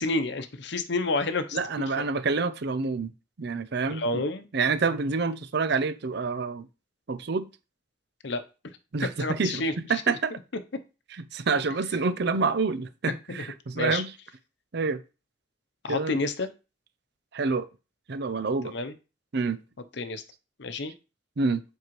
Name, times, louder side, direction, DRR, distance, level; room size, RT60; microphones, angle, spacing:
voice 1, 0.0-2.0 3.9-4.5 8.2-8.4 9.2-10.0 13.3-13.4 13.7-14.0 15.8-16.5 18.6-18.9 20.0-20.2 20.6-20.9, left 2 dB, 65° left, 0.8 m, -30 dB
voice 2, 1.5-3.1 3.4-4.2 4.5-6.7 7.1-7.5 8.9-9.6 9.9-10.3 11.3-14.1 14.7-15.0 15.9-16.2 17.3-17.7 18.1-18.7 19.3-19.6 21.4-21.6, right 4 dB, 60° right, 0.6 m, -27 dB
7.6 x 4.7 x 3.1 m
head